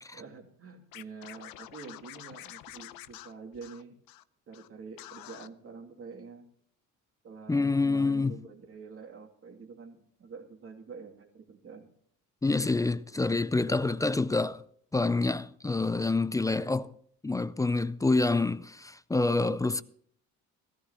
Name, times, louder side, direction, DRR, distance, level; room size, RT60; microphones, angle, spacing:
voice 1, 0.1-4.0 4.5-6.4 7.2-11.9, right 5 dB, 40° right, 2.6 m, -47 dB
Scratching (performance technique), 0.9-4.2 4.5-4.7 5.0-5.5, left 15 dB, 80° left, 0.8 m, -47 dB
voice 2, 7.5-8.4 12.4-14.6 14.9-16.9 17.2-19.8, left 3 dB, 10° left, 0.4 m, -27 dB
17.0 x 14.0 x 2.9 m
cardioid pair, 110°, 34 cm